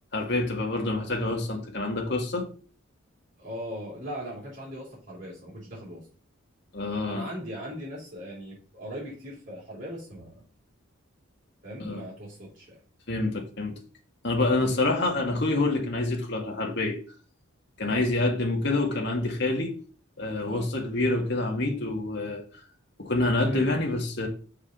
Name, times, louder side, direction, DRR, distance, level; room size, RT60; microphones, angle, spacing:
voice 1, 0.1-2.5 6.7-7.3 11.8-12.0 13.1-13.7 14.2-17.0 17.8-19.7 20.2-22.4 23.0-24.3, left 2 dB, 50° left, 1.9 m, -27 dB
voice 2, 3.4-6.1 7.1-10.4 11.6-12.8 17.8-18.0 20.4-20.7 23.5-23.8, equal, 35° right, 3.8 m, -39 dB
6.5 x 4.8 x 5.2 m
head